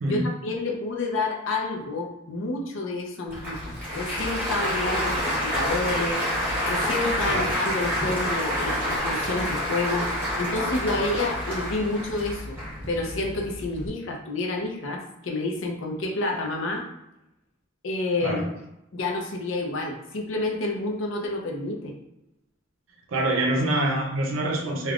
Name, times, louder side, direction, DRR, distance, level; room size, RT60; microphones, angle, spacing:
voice 1, 0.0-6.2 6.7-12.6 12.9-16.9 17.8-18.5 18.9-21.9, left 2 dB, 70° left, 1 dB, 0.5 m, -29 dB
Applause, 3.3-13.9, equal, 10° right, 1.1 m, -28 dB
voice 2, 23.1-24.9, right 1 dB, 80° right, 0 dB, 0.5 m, -25 dB
3.4 x 2.2 x 2.4 m, 0.88 s
head